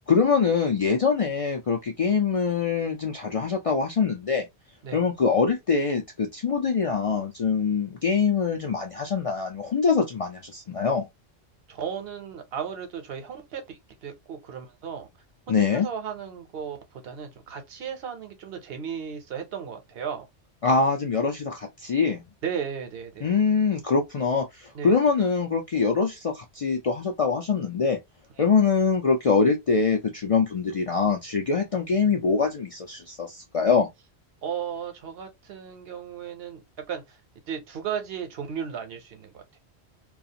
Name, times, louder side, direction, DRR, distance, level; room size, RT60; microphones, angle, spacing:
voice 1, 0.1-4.5 4.9-11.1 15.5-15.9 20.6-22.2 23.2-28.0 28.4-33.9, left 5 dB, 55° left, 0.4 m, -24 dB
voice 2, 11.7-15.1 15.7-20.3 22.4-23.3 24.7-24.9 34.4-37.2 37.5-39.4, right 7 dB, 65° right, 0.9 m, -35 dB
2.4 x 2.3 x 2.7 m
omnidirectional pair, 1.1 m